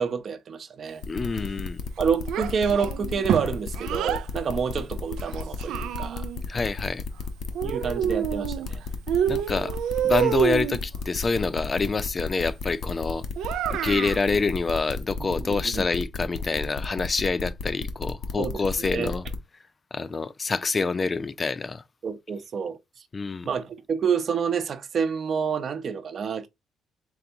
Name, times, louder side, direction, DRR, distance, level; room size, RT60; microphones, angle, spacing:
voice 1, 0.0-1.0 2.0-6.2 7.6-8.8 15.2-15.9 18.4-18.6 18.9-19.1 22.0-22.8 23.4-26.5, right 6 dB, 55° right, 0.7 m, -28 dB
sound 1, 1.0-19.4, left 4 dB, 65° left, 0.8 m, -33 dB
voice 2, 1.1-1.8 6.5-7.0 9.2-9.7 10.0-13.3 13.7-19.3 19.9-21.8 23.1-23.5, left 4 dB, 35° left, 0.4 m, -27 dB
Child speech kid speaking, 2.3-4.3 5.2-6.4 7.6-8.7 9.1-10.8 13.4-14.2, right 10 dB, 85° right, 0.3 m, -27 dB
4.0 x 3.4 x 2.7 m
cardioid pair, 90°, 0 cm